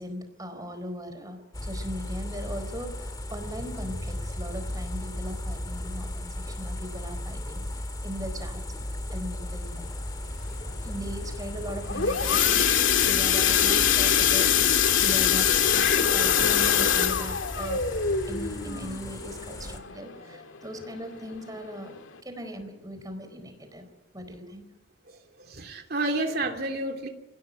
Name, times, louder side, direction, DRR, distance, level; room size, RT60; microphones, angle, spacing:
voice 1, 0.0-9.8 10.8-14.5 15.0-17.8 18.3-22.0 22.2-23.9 24.1-24.7, equal, 20° right, 8 dB, 4.3 m, -39 dB
sound 1, 1.5-19.8, left 1 dB, 20° left, 2.2 m, -36 dB
sound 2, 11.7-20.3 20.8-21.0 21.3-21.4 21.9-22.0, left 8 dB, 80° left, 2.1 m, -23 dB
voice 2, 25.1-27.1, right 2 dB, 50° right, 3 dB, 2.8 m, -30 dB
29.5 x 17.0 x 9.8 m, 1.0 s
head